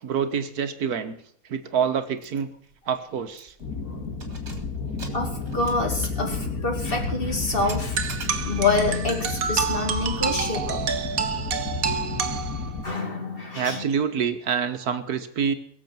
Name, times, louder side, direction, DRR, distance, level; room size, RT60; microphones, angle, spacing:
voice 1, 0.0-1.2 1.5-2.5 2.9-3.5 13.5-15.5, right 7 dB, 85° right, 9 dB, 1.8 m, -26 dB
Keys jangling, 2.2-2.4 2.7-2.8 3.3-3.7 4.1-8.8, right 3 dB, 45° right, 2.8 m, -42 dB
sound 1, 3.6-12.8, left 4 dB, 80° left, 2.7 m, -31 dB
voice 2, 3.8-4.2 5.1-10.8 12.8-13.8, left 3 dB, 35° left, 3 dB, 2.7 m, -27 dB
sound 2, 8.0-13.0, right 6 dB, 65° right, 1.5 m, -29 dB
22.0 x 7.4 x 6.0 m, 0.68 s
omnidirectional pair, 1.6 m